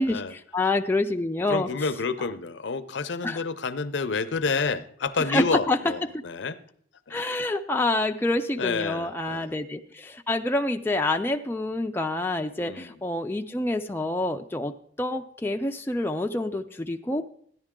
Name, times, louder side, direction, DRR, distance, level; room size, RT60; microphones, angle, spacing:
voice 1, 0.0-1.7 3.2-3.4 5.3-5.8 6.1-6.2 7.1-17.3, left 2 dB, 10° left, 4 dB, 0.4 m, -27 dB
voice 2, 1.5-6.6 7.1-7.2 8.6-9.5 12.6-13.0, left 4 dB, 65° left, 13 dB, 0.6 m, -29 dB
14.0 x 10.5 x 3.7 m, 0.62 s
head